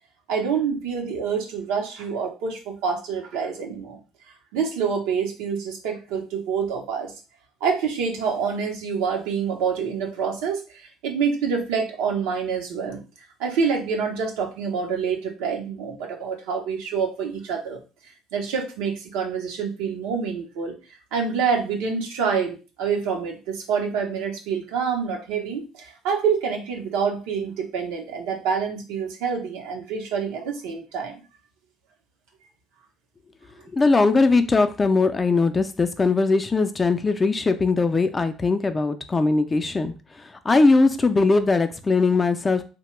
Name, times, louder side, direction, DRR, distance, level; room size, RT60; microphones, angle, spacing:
voice 1, 0.3-4.0 4.5-7.1 7.6-13.0 13.4-17.8 18.3-20.8 21.1-31.2, right 6 dB, 80° right, 2 dB, 0.7 m, -27 dB
voice 2, 33.7-42.6, left 3 dB, 25° left, 8 dB, 0.4 m, -20 dB
2.8 x 2.1 x 3.1 m, 0.33 s
supercardioid pair, 70°, 0 cm